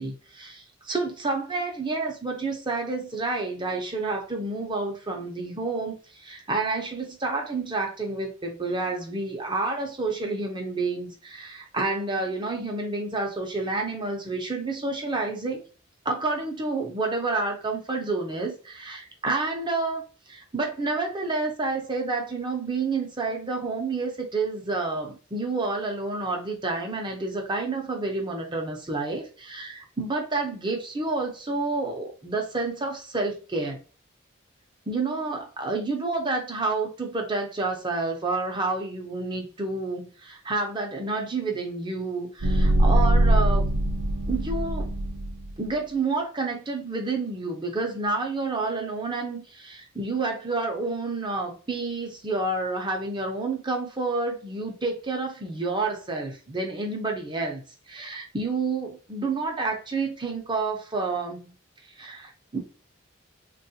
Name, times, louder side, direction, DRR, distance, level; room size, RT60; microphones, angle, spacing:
voice 1, 0.0-15.6 16.0-20.0 20.3-33.8 34.9-43.7 44.3-44.9 45.6-57.6 57.9-61.5 62.0-62.6, right 3 dB, 20° right, 0.6 m, -29 dB
sound 1, 42.4-45.5, right 1 dB, 75° right, 0.5 m, -22 dB
3.5 x 2.3 x 2.7 m
head